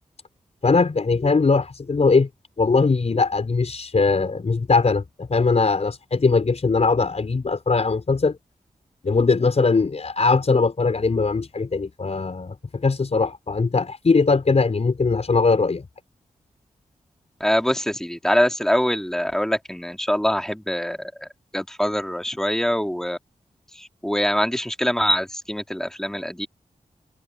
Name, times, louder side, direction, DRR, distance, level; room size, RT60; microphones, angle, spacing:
voice 1, 0.6-2.3 2.6-8.4 9.0-15.8, left 4 dB, 50° left, 4.8 m, -20 dB
voice 2, 17.4-21.3 21.5-23.2 23.7-26.5, equal, 5° left, 2.2 m, -24 dB
cardioid pair, 60°, 14 cm